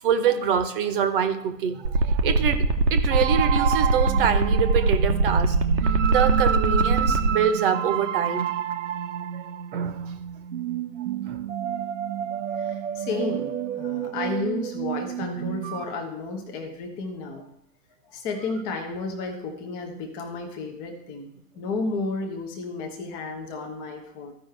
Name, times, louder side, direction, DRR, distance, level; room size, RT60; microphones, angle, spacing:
voice 1, 0.0-8.5 9.3-9.4 9.7-10.2 11.2-11.4 14.0-14.1, right 8 dB, 35° right, 9 dB, 1.0 m, -25 dB
sound 1, 1.8-7.3, right 2 dB, 75° right, 1.2 m, -21 dB
sound 2, 3.1-15.8, right 9 dB, 50° right, 0.6 m, -29 dB
voice 2, 12.6-17.5 18.1-24.3, left 3 dB, 10° left, 3 dB, 0.5 m, -32 dB
14.5 x 5.3 x 3.3 m, 0.79 s
figure-of-eight pair, 120°, 50 cm